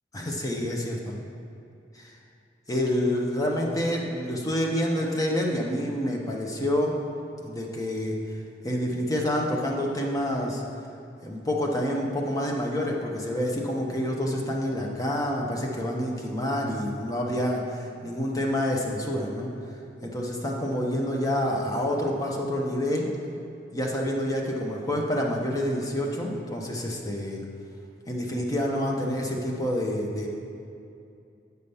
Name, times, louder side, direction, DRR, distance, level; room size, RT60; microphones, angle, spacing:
voice 1, 0.1-1.2 1.9-2.2 2.7-7.0 7.4-8.2 8.6-10.6 11.2-19.5 20.0-23.1 23.7-27.4 28.1-30.3, left 1 dB, 20° left, -1 dB, 0.9 m, -28 dB
8.0 x 5.1 x 5.5 m, 2.6 s
head